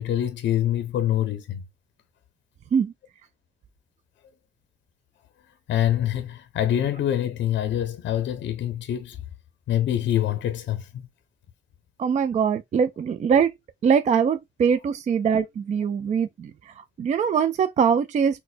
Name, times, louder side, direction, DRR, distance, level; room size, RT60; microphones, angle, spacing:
voice 1, 0.0-1.6 5.7-9.2 9.7-11.1, left 11 dB, 65° left, 0.5 m, -25 dB
voice 2, 12.0-13.5 13.8-18.4, right 7 dB, 35° right, 0.4 m, -22 dB
4.1 x 2.1 x 2.4 m
cardioid pair, 90°, 20 cm